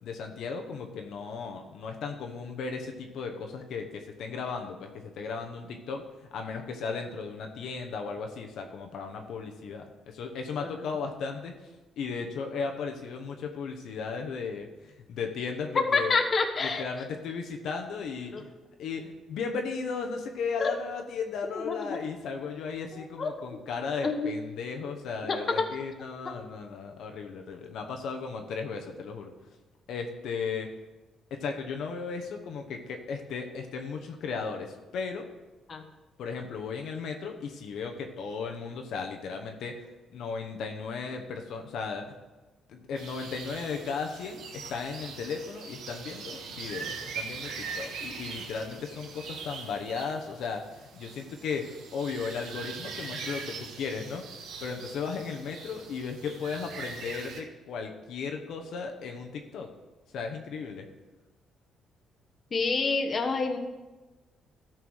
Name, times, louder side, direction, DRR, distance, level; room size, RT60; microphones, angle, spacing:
voice 1, 0.0-6.1 6.3-11.5 12.0-16.1 16.6-18.5 18.8-29.3 29.9-30.7 31.3-35.3 36.2-39.7 40.1-42.1 42.7-54.2 54.6-59.7 60.1-60.9, left 5 dB, 75° left, 3 dB, 1.0 m, -36 dB
voice 2, 15.7-16.8 18.3-18.4 20.6-20.8 21.7-22.0 22.9-23.6 23.9-24.3 25.3-25.6 26.2-26.3 35.7-35.8 62.5-63.6, left 4 dB, 40° left, 4 dB, 1.1 m, -28 dB
sound 1, 42.9-57.4, right 5 dB, 85° right, 1.3 m, -42 dB
13.0 x 4.6 x 6.4 m, 1.2 s
cardioid pair, 105°, 0 cm